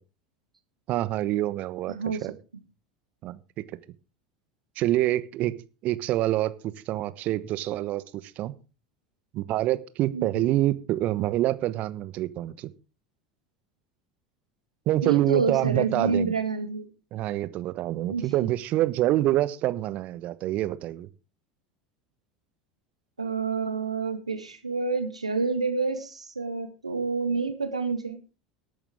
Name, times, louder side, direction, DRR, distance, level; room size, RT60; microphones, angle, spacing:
voice 1, 0.9-1.9 2.2-2.3 3.2-3.6 4.8-5.5 5.8-8.5 9.3-12.7 14.9-16.3 17.1-21.1, right 15 dB, 45° right, 15 dB, 1.0 m, -26 dB
voice 2, 1.9-2.3 10.1-10.4 15.0-16.9 18.1-18.3 23.2-28.2, right 4 dB, 85° right, 8 dB, 1.7 m, -28 dB
19.5 x 8.7 x 3.6 m, 0.33 s
figure-of-eight pair, 75°, 3 cm